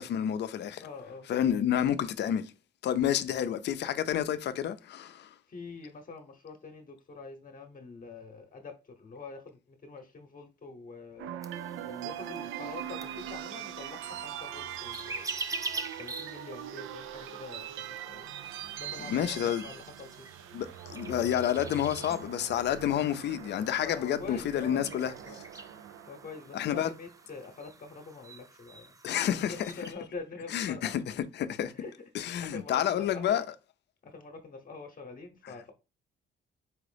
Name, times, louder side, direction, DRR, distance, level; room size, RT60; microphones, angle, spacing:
voice 1, 0.0-0.9 1.3-2.5 2.8-5.3 19.0-19.6 20.5-25.1 26.5-26.9 29.0-29.7 30.5-31.0 31.4-31.7 32.1-33.4, left 10 dB, 60° left, 0.5 m, -29 dB
voice 2, 0.8-1.3 5.5-11.3 11.8-15.4 16.0-18.3 18.8-20.3 22.0-22.3 23.8-24.9 25.2-25.4 26.1-28.9 29.5-31.0 31.7-33.4 34.0-35.7, left 4 dB, 45° left, 0.9 m, -45 dB
sound 1, 11.2-27.4, right 10 dB, 85° right, 0.4 m, -42 dB
sound 2, 11.4-29.9, right 3 dB, 15° right, 0.4 m, -45 dB
4.6 x 2.4 x 3.3 m
cardioid pair, 90°, 20 cm